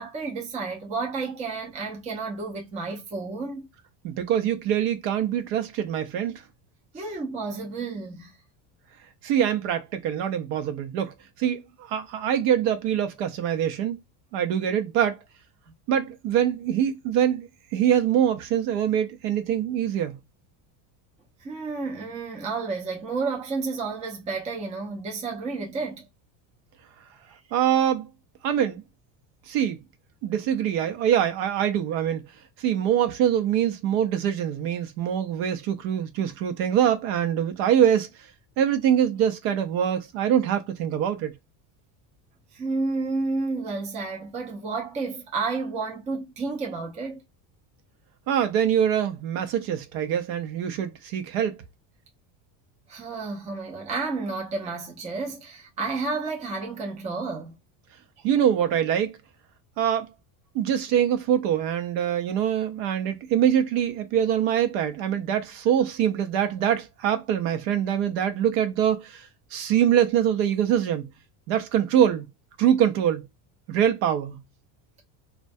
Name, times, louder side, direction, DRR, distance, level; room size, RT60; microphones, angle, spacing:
voice 1, 0.0-3.6 6.9-8.3 21.4-26.1 27.3-27.4 42.5-47.2 52.9-57.5, right 3 dB, 15° right, 0.4 m, -31 dB
voice 2, 4.0-6.3 9.2-14.0 14.3-15.2 15.9-20.2 27.5-28.1 28.4-28.8 29.5-29.8 30.2-32.3 32.6-38.1 38.6-41.3 48.3-51.6 58.2-59.2 59.8-60.1 60.5-71.1 71.5-72.3 72.6-73.3 73.7-74.4, right 9 dB, 70° right, 0.7 m, -24 dB
2.2 x 2.1 x 2.6 m
cardioid pair, 145°, 49 cm